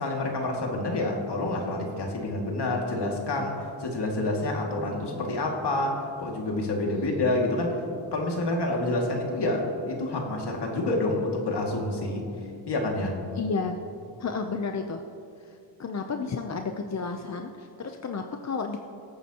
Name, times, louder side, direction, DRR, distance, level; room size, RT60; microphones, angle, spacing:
voice 1, 0.0-7.8 8.1-12.2 12.7-13.2, left 2 dB, 60° left, 0 dB, 2.3 m, -28 dB
voice 2, 13.4-13.8 14.2-15.0 15.8-18.8, left 4 dB, 35° left, 5 dB, 0.7 m, -32 dB
24.0 x 8.9 x 3.0 m, 2.5 s
cardioid pair, 90°, 45 cm